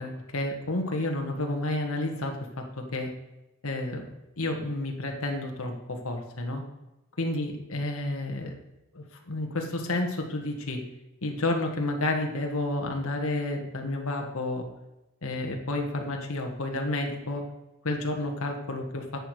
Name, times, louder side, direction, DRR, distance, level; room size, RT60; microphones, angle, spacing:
voice 1, 0.0-3.1 3.6-4.1 4.4-6.6 7.2-8.6 8.9-10.8 11.2-14.6 15.2-17.4 17.8-19.2, left 2 dB, 85° left, 2 dB, 1.5 m, -30 dB
11.0 x 8.2 x 4.8 m, 0.98 s
head